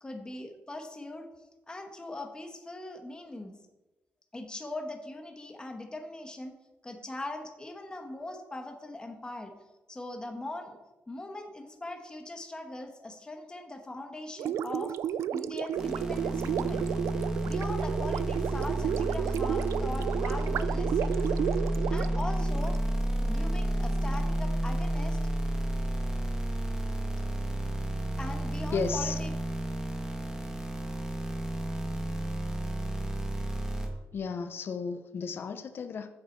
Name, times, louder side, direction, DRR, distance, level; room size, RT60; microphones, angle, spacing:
voice 1, 0.0-1.3 1.7-3.5 4.3-6.6 6.8-9.5 9.9-10.8 11.1-15.0 15.3-16.9 17.4-21.2 21.9-22.8 23.2-25.2 28.2-29.3, left 2 dB, 15° left, 4 dB, 1.3 m, -40 dB
Gurgling, 14.4-22.8, right 10 dB, 75° right, 0.3 m, -32 dB
sound 1, 15.8-33.9, right 1 dB, 10° right, 1.5 m, -31 dB
voice 2, 28.7-29.2 31.8-31.9 34.1-36.1, left 5 dB, 50° left, 8 dB, 0.6 m, -34 dB
8.5 x 6.8 x 4.6 m, 1.1 s
cardioid pair, 115°, 5 cm